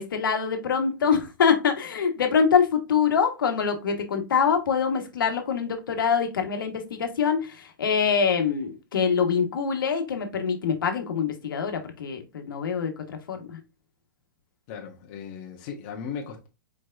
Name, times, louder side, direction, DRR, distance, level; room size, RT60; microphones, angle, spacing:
voice 1, 0.0-13.6, left 6 dB, 85° left, 1.4 m, -24 dB
voice 2, 14.7-16.5, left 6 dB, 30° left, 1.0 m, -37 dB
4.7 x 4.5 x 2.5 m
hypercardioid pair, 165°, 11 cm